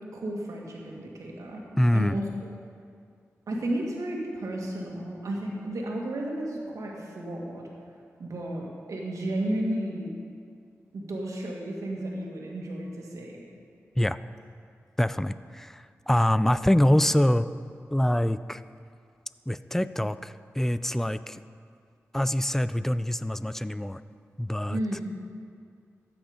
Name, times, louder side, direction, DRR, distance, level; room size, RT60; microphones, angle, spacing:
voice 1, 0.1-1.6 1.9-2.5 3.5-7.7 8.2-10.1 10.9-13.4 24.7-25.0, right 1 dB, 80° right, -1 dB, 2.0 m, -33 dB
voice 2, 1.7-2.2 14.0-14.2 15.0-17.5 17.9-18.6 19.5-21.4 22.1-24.0 24.4-24.8, left 1 dB, 5° left, 14 dB, 0.4 m, -25 dB
13.5 x 8.9 x 5.1 m, 2.3 s
cardioid pair, 55°, 5 cm